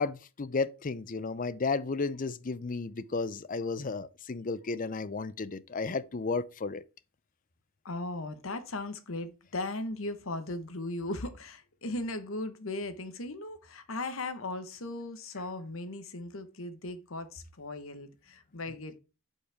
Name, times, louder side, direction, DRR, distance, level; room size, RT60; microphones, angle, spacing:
voice 1, 0.0-6.8, left 4 dB, 40° left, 0.5 m, -33 dB
voice 2, 7.8-19.0, left 2 dB, 65° left, 1.2 m, -37 dB
8.3 x 5.5 x 3.5 m
head